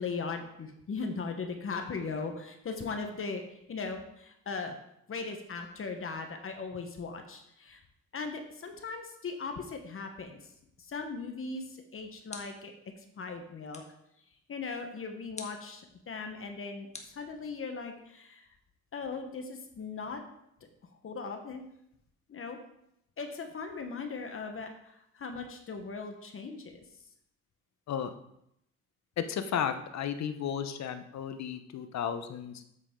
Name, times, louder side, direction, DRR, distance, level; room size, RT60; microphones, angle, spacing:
voice 1, 0.0-4.7 5.1-7.8 8.1-10.5 10.8-12.7 13.2-13.8 14.5-18.5 18.9-20.2 21.0-21.6 22.3-22.6 23.2-26.8, left 4 dB, 45° left, 5 dB, 1.2 m, -38 dB
sound 1, 11.9-12.8 13.7-14.1 15.3-15.7 16.9-17.8, left 3 dB, 20° left, 1.4 m, -48 dB
voice 2, 29.2-32.6, left 8 dB, 65° left, 9 dB, 0.9 m, -34 dB
7.9 x 7.9 x 3.8 m, 0.78 s
cardioid pair, 90°, 30 cm